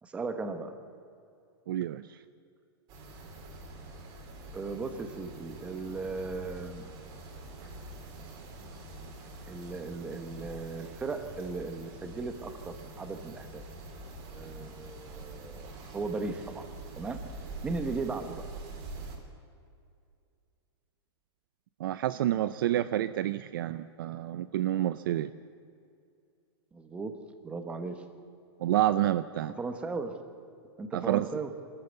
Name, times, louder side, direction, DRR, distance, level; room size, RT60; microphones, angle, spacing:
voice 1, 0.0-0.7 4.5-6.9 9.5-13.6 14.3-16.6 17.0-17.2 17.6-18.4 26.7-28.0 29.5-30.2 30.8-31.5, right 3 dB, 10° right, 7 dB, 1.1 m, -37 dB
voice 2, 1.7-2.0 21.8-25.3 28.6-29.5 30.9-31.3, right 13 dB, 55° right, 13 dB, 0.5 m, -28 dB
sound 1, 2.9-19.2, right 2 dB, 30° right, 3.1 m, -45 dB
24.5 x 14.0 x 8.1 m, 2.4 s
supercardioid pair, 175°, 14 cm